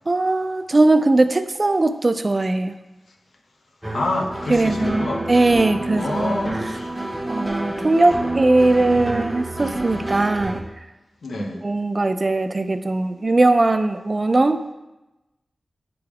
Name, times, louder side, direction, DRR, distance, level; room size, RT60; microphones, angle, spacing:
voice 1, 0.1-2.7 4.5-6.4 7.3-10.6 11.4-14.6, right 2 dB, 35° right, 10 dB, 0.3 m, -19 dB
sound 1, 3.8-10.6, right 2 dB, 10° right, 0.7 m, -28 dB
voice 2, 3.9-5.2 5.9-6.9 11.2-11.6, left 2 dB, 80° left, 2 dB, 0.8 m, -27 dB
10.0 x 3.4 x 3.4 m, 1.0 s
wide cardioid pair, 85°, 0 cm